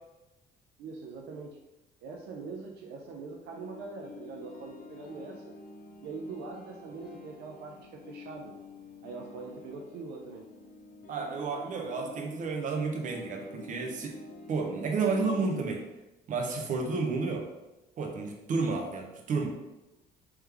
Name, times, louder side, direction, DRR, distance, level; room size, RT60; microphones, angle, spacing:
voice 1, 0.8-1.6 2.0-5.4 6.0-8.5 9.0-10.4, right 4 dB, 80° right, 0 dB, 0.5 m, -42 dB
sound 1, 3.5-15.8, left 3 dB, 60° left, 0.9 m, -48 dB
voice 2, 11.1-14.2 14.5-15.8 16.3-17.5 18.0-19.6, right 4 dB, 50° right, 2 dB, 0.8 m, -31 dB
3.5 x 3.1 x 3.4 m, 0.98 s
cardioid pair, 110°, 17 cm